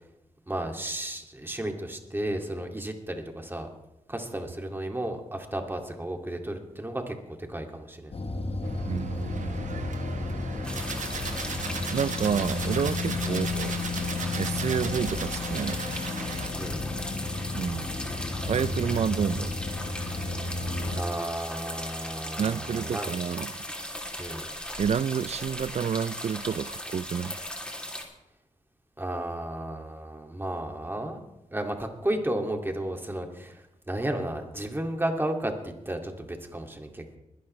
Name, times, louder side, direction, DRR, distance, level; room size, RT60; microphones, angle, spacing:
voice 1, 0.5-3.7 4.1-8.1 13.2-13.4 16.6-16.8 20.9-23.1 24.2-24.5 29.0-31.2 31.5-37.2, right 1 dB, 15° right, 2.3 m, -33 dB
sound 1, 8.1-21.0, left 3 dB, 50° left, 1.4 m, -32 dB
sound 2, 8.6-16.5, right 6 dB, 75° right, 1.2 m, -38 dB
voice 2, 8.8-9.9 11.9-13.8 14.4-15.8 17.5-17.9 18.4-19.6 22.4-23.6 24.8-27.4, right 7 dB, 60° right, 0.4 m, -29 dB
sound 3, 10.6-28.0, left 1 dB, 5° left, 2.9 m, -38 dB
21.5 x 11.5 x 3.2 m
cardioid pair, 70°, 13 cm